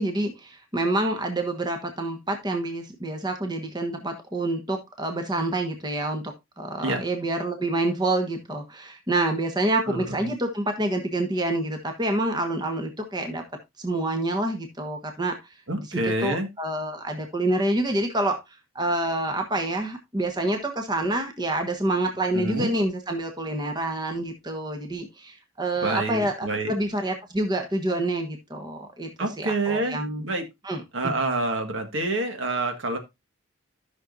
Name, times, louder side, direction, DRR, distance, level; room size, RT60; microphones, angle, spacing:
voice 1, 0.0-13.4 13.8-15.3 15.9-18.4 18.7-29.1 29.4-30.2 30.6-31.1, right 1 dB, 20° right, 1.3 m, -27 dB
voice 2, 9.9-10.3 15.7-16.5 22.3-22.7 25.8-26.7 29.2-30.5 30.9-33.0, right 2 dB, 60° right, 1.7 m, -27 dB
13.5 x 6.2 x 2.6 m
head